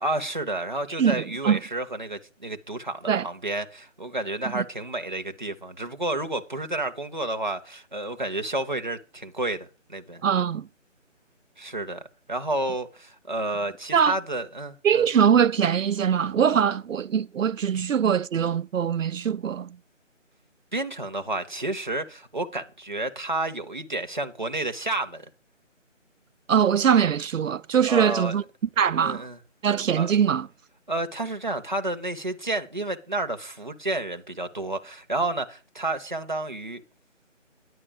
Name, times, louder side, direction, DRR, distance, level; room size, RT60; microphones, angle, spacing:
voice 1, 0.0-10.2 11.6-12.0 12.3-15.1 17.7-17.8 20.7-25.3 27.9-28.4 29.0-29.4 29.9-30.1 30.9-36.8, right 2 dB, 40° right, 0.7 m, -30 dB
voice 2, 1.0-1.6 3.1-3.3 4.5-4.6 10.2-10.7 13.9-14.2 14.8-19.7 26.5-28.4 28.8-29.2 29.6-30.5, right 8 dB, 80° right, 0.5 m, -22 dB
9.9 x 9.3 x 4.9 m
figure-of-eight pair, 180°, 38 cm